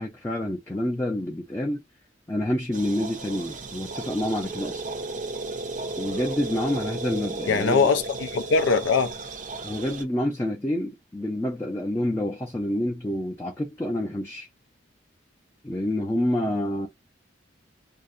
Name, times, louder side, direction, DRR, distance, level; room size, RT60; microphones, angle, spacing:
voice 1, 0.0-1.8 2.3-4.8 6.0-7.9 9.6-14.5 15.6-16.9, left 1 dB, 15° left, 0.5 m, -28 dB
sound 1, 2.7-10.0, right 3 dB, 40° right, 0.5 m, -34 dB
voice 2, 7.5-9.1, left 5 dB, 80° left, 0.4 m, -22 dB
2.6 x 2.1 x 2.4 m
head